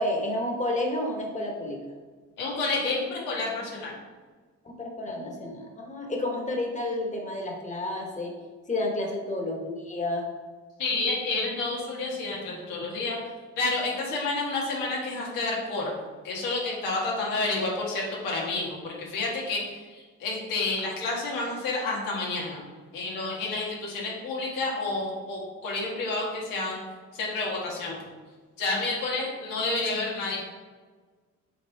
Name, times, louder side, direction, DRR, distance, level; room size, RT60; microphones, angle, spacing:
voice 1, 0.0-1.8 4.6-8.3 8.7-10.2, left 1 dB, 20° left, 0 dB, 1.5 m, -30 dB
voice 2, 2.4-3.9 10.8-13.2 13.6-15.9 16.2-19.6 19.9-22.6 22.9-26.8 27.2-28.0 28.6-30.4, left 3 dB, 85° left, -4 dB, 1.8 m, -29 dB
7.4 x 3.8 x 3.6 m, 1.4 s
supercardioid pair, 70°, 32 cm